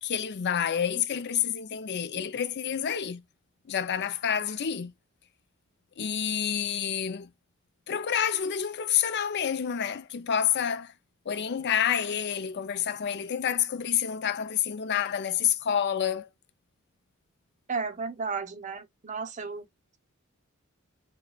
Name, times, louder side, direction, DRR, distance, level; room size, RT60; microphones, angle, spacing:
voice 1, 0.0-3.2 3.7-4.9 6.0-7.3 7.9-10.9 11.3-16.3, left 8 dB, 50° left, 0.5 m, -28 dB
voice 2, 17.7-19.6, right 5 dB, 35° right, 0.8 m, -33 dB
6.5 x 2.3 x 2.3 m
head